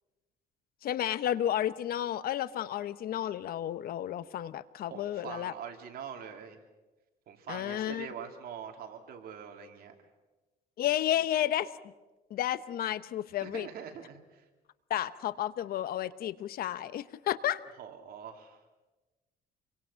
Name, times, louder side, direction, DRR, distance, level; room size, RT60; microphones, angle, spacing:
voice 1, 0.8-5.5 7.5-8.1 10.8-11.7 12.3-13.7 14.9-17.6, left 11 dB, 60° left, 15 dB, 0.9 m, -32 dB
voice 2, 4.9-6.6 7.3-9.9 13.4-14.4 17.8-18.6, right 7 dB, 65° right, 4 dB, 3.1 m, -44 dB
28.0 x 23.5 x 5.8 m, 1.2 s
cardioid pair, 110°, 17 cm